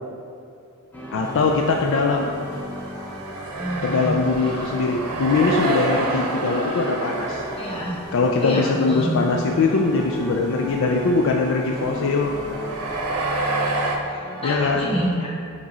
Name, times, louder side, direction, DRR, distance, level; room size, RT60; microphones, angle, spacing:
sound 1, 0.9-15.1, equal, 5° left, 0.7 m, -35 dB
voice 1, 1.1-2.3 3.8-7.4 8.1-12.3 14.4-14.9, left 4 dB, 60° left, 2 dB, 0.4 m, -21 dB
sound 2, 1.3-8.1 8.6-8.9 9.2-9.3 9.9-14.0, right 2 dB, 90° right, 0.8 m, -29 dB
voice 2, 3.5-4.7 7.6-8.0 8.4-9.1 14.1-15.3, equal, 25° left, -5 dB, 1.4 m, -28 dB
6.0 x 4.1 x 4.2 m, 2.5 s
head